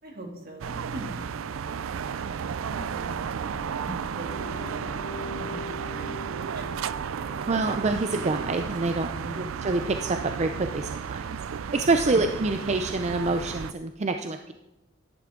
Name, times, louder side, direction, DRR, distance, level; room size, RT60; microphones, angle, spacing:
voice 1, 0.0-5.0 5.4-6.7 7.2-7.8 9.2-9.5 12.1-12.3, right 1 dB, 50° right, 1 dB, 2.6 m, -42 dB
sound 1, 0.6-13.7, right 7 dB, 85° right, 0.4 m, -33 dB
sound 2, 4.3-8.9, left 1 dB, 85° left, 3.5 m, -43 dB
voice 2, 7.5-11.4 11.7-14.5, right 3 dB, 35° right, 6 dB, 0.5 m, -27 dB
14.0 x 10.5 x 3.8 m, 0.98 s
head